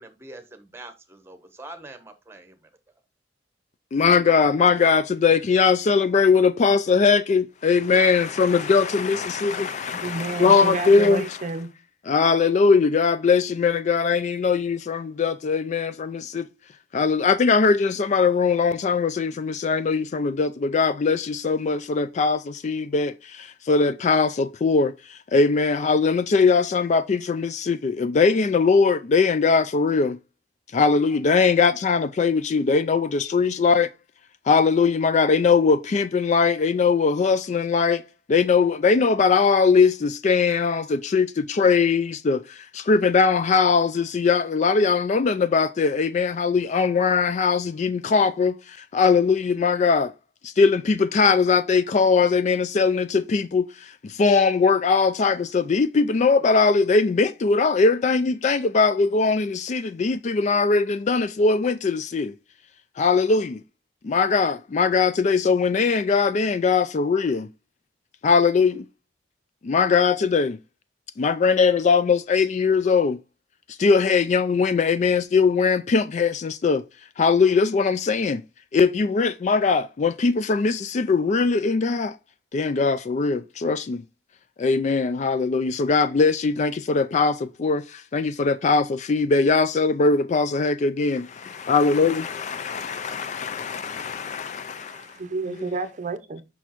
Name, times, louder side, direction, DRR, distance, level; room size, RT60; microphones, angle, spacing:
voice 1, 0.0-2.7, right 2 dB, 15° right, 1.0 m, -44 dB
voice 2, 3.9-11.4 12.1-16.5 16.9-30.2 30.7-33.9 34.5-38.0 38.3-50.1 50.4-62.3 63.0-63.6 64.0-67.5 68.2-68.9 69.6-70.6 71.2-73.2 73.8-76.8 77.2-78.4 78.7-82.1 82.5-84.0 84.6-95.1 95.5-95.7, left 4 dB, 40° left, 0.3 m, -21 dB
voice 3, 10.0-11.7 94.8-96.4, right 3 dB, 40° right, 0.6 m, -30 dB
6.2 x 5.5 x 2.9 m
head